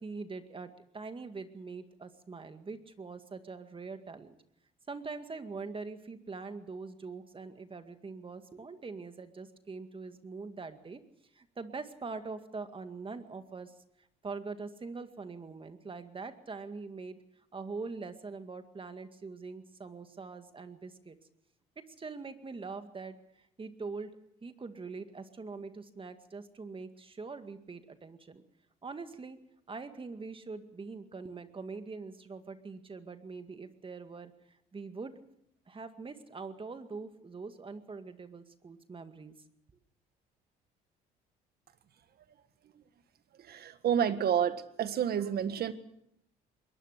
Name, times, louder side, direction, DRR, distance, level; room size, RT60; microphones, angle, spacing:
voice 1, 0.0-4.3 4.9-11.0 11.3-13.7 14.2-17.2 17.5-21.2 22.0-24.1 24.4-28.4 28.8-29.4 29.7-34.3 34.7-35.1 35.7-39.3, right 4 dB, 30° right, 8 dB, 2.1 m, -43 dB
voice 2, 43.4-45.7, right 9 dB, 60° right, 11 dB, 1.7 m, -29 dB
22.0 x 19.0 x 6.6 m, 0.74 s
supercardioid pair, 75°, 18 cm